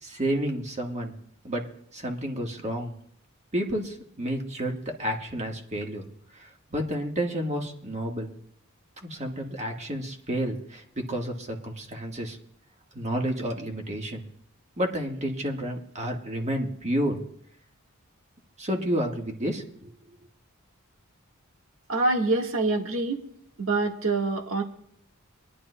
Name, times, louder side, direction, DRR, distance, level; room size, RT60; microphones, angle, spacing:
voice 1, 0.0-1.1 1.4-1.7 1.9-2.9 3.5-6.0 6.3-8.3 9.0-12.4 12.9-14.2 14.8-17.2 18.6-19.9, equal, 30° right, 2 dB, 1.5 m, -30 dB
voice 2, 21.9-23.2 23.6-24.6, right 3 dB, 75° right, 2 dB, 1.5 m, -25 dB
23.5 x 11.0 x 2.2 m, 0.70 s
head